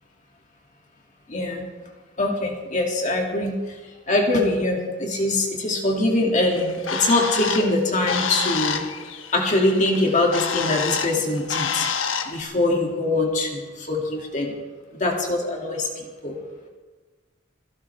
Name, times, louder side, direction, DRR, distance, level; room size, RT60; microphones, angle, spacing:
voice 1, 1.3-1.7 2.2-3.5 4.1-8.8 9.3-11.9 12.3-14.6 15.0-16.4, left 2 dB, 40° left, 0 dB, 2.2 m, -23 dB
Bird, 6.5-12.4, left 6 dB, 85° left, 1.1 m, -28 dB
28.5 x 12.5 x 3.4 m, 1.4 s
head